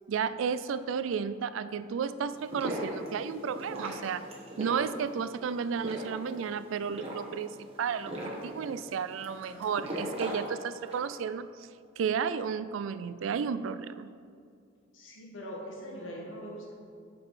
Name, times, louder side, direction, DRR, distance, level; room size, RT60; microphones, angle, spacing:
voice 1, 0.1-4.3 4.6-7.5 7.8-11.7 12.0-14.1, right 6 dB, 80° right, 14 dB, 0.3 m, -33 dB
sound 1, 2.3-11.1, right 1 dB, 30° right, 1.4 m, -39 dB
voice 2, 14.9-16.7, equal, 80° left, -2 dB, 1.6 m, -42 dB
8.1 x 5.2 x 4.9 m, 2.3 s
head